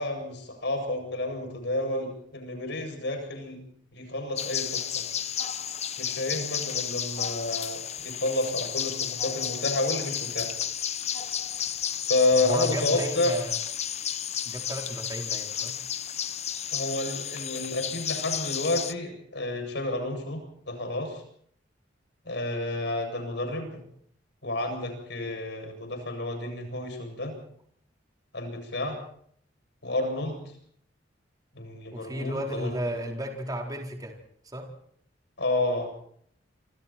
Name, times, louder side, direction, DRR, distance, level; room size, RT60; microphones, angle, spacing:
voice 1, 0.0-3.6 3.9-5.0 6.0-10.5 12.1-13.3 16.7-21.2 22.3-23.8 24.4-27.3 28.3-29.0 29.8-30.4 31.5-33.0 35.4-35.9, left 2 dB, 65° left, 5 dB, 7.8 m, -30 dB
sound 1, 4.4-18.9, left 9 dB, 35° left, 0.9 m, -32 dB
voice 2, 12.4-13.6 14.4-15.8 31.9-34.2 34.4-34.7, right 1 dB, 20° right, 1 dB, 4.5 m, -33 dB
28.0 x 25.5 x 4.5 m, 0.65 s
head